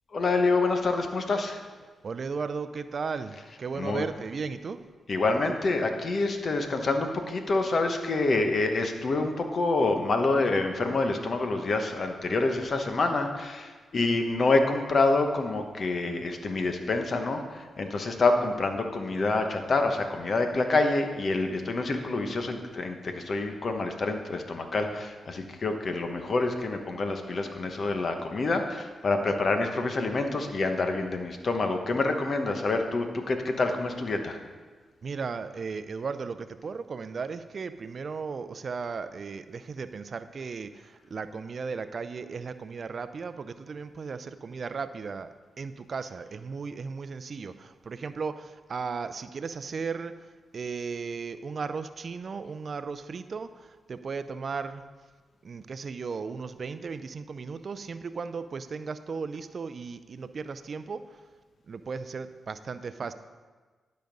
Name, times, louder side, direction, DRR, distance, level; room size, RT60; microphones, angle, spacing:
voice 1, 0.1-1.6 3.4-4.1 5.1-34.4, left 3 dB, 55° left, 5 dB, 1.1 m, -27 dB
voice 2, 2.0-4.8 35.0-50.3 50.5-54.8 55.4-61.2 61.7-63.1, right 5 dB, 55° right, 12 dB, 0.5 m, -36 dB
12.0 x 5.2 x 5.3 m, 1.4 s
cardioid pair, 55°, 0 cm